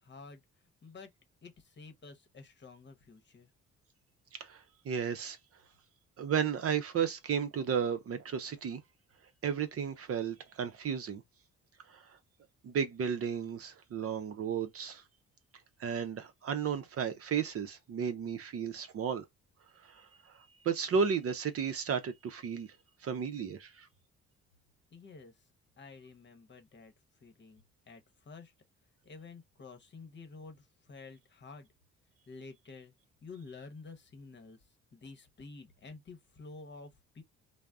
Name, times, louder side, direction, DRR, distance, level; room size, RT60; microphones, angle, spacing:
voice 1, 0.0-0.4 0.8-1.1 1.4-3.5 24.9-25.3 25.8-26.9 27.2-28.5 29.0-31.7 32.3-32.9 33.2-34.6 34.9-37.2, left 4 dB, 35° left, 0.9 m, -50 dB
voice 2, 4.3-5.4 6.2-8.8 9.4-11.2 11.9-12.2 12.6-15.0 15.8-19.2 19.8-22.8 23.0-23.9, right 7 dB, 50° right, 0.6 m, -34 dB
2.4 x 2.0 x 3.4 m
cardioid pair, 90°, 30 cm